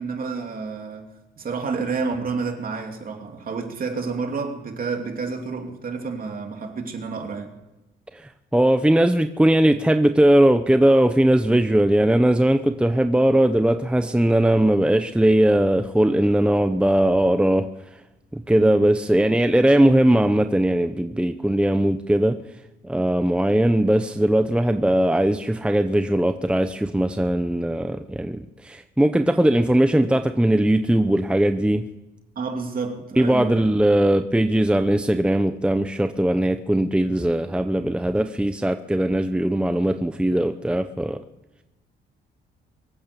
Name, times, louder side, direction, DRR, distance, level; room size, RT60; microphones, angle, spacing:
voice 1, 0.0-7.5 18.6-19.0 32.3-33.7, right 4 dB, 45° right, 3.0 m, -30 dB
voice 2, 8.1-17.7 18.3-22.4 22.8-31.9 33.2-41.2, right 1 dB, 5° right, 0.7 m, -19 dB
23.5 x 8.6 x 6.8 m
cardioid pair, 90°, 20 cm